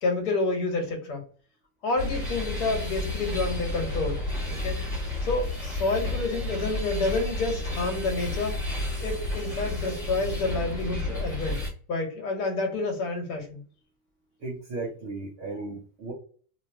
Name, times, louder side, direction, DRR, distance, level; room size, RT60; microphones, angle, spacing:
voice 1, 0.0-1.2 1.8-4.2 4.6-4.8 5.2-8.6 9.0-11.6 11.9-13.6, left 3 dB, 80° left, 2 dB, 1.6 m, -29 dB
sound 1, 2.0-11.7, left 2 dB, 20° left, 1.1 m, -31 dB
voice 2, 14.4-16.1, right 3 dB, 20° right, -4 dB, 0.3 m, -35 dB
2.9 x 2.2 x 3.8 m, 0.42 s
supercardioid pair, 180°, 43 cm